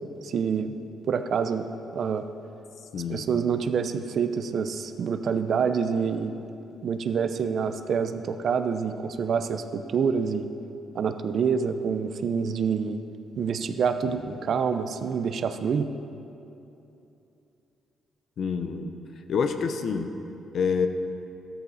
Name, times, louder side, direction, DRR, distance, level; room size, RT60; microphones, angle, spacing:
voice 1, 0.2-0.7 1.1-1.7 1.9-2.2 3.1-6.4 6.8-10.4 10.9-13.0 13.4-15.9, right 6 dB, 60° right, 9 dB, 0.7 m, -27 dB
voice 2, 2.9-3.3 14.1-14.2 18.4-18.9 19.3-20.1 20.5-20.9, left 6 dB, 60° left, 7 dB, 0.9 m, -27 dB
13.5 x 12.5 x 4.2 m, 2.8 s
cardioid pair, 90°, 0 cm